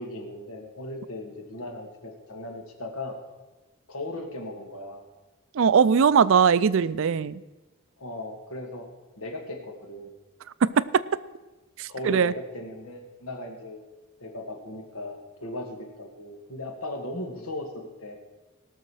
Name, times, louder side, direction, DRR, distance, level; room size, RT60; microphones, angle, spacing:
voice 1, 0.0-3.2 3.9-5.0 8.0-8.9 9.2-10.1 11.9-13.8 14.2-18.2, left 1 dB, 85° left, 3 dB, 2.1 m, -37 dB
voice 2, 5.6-7.4 10.9-11.0 12.1-12.3, right 6 dB, 65° right, 17 dB, 0.4 m, -20 dB
17.5 x 6.5 x 6.4 m, 1.2 s
head